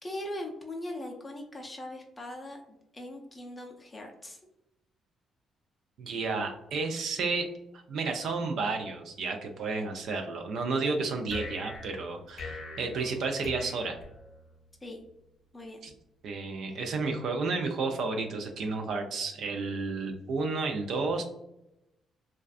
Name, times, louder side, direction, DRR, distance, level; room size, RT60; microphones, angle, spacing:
voice 1, 0.0-2.6 2.9-4.4 14.8-15.0 15.5-15.8, left 1 dB, 20° left, 1 dB, 0.4 m, -40 dB
voice 2, 6.0-7.5 7.7-14.0 15.8-15.9 16.2-21.2, right 4 dB, 70° right, 4 dB, 0.3 m, -32 dB
sound 1, 11.3-14.7, left 3 dB, 55° left, 0.7 m, -43 dB
2.4 x 2.2 x 2.3 m, 0.87 s
cardioid pair, 90°, 0 cm